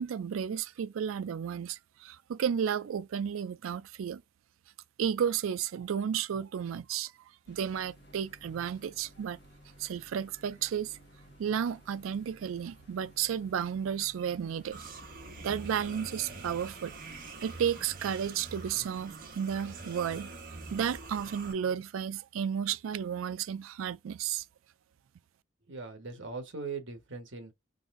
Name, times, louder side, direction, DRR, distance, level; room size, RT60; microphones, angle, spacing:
voice 1, 0.0-4.2 5.0-7.1 7.5-9.4 9.8-11.0 11.4-14.8 15.4-16.9 17.4-20.3 20.7-24.4, right 8 dB, 90° right, 0.3 m, -33 dB
sound 1, 7.4-18.9, equal, 55° left, 1.4 m, -57 dB
sound 2, 14.7-21.5, right 3 dB, 45° right, 1.1 m, -45 dB
voice 2, 25.7-27.5, right 4 dB, 70° right, 1.2 m, -40 dB
3.9 x 3.2 x 2.5 m
head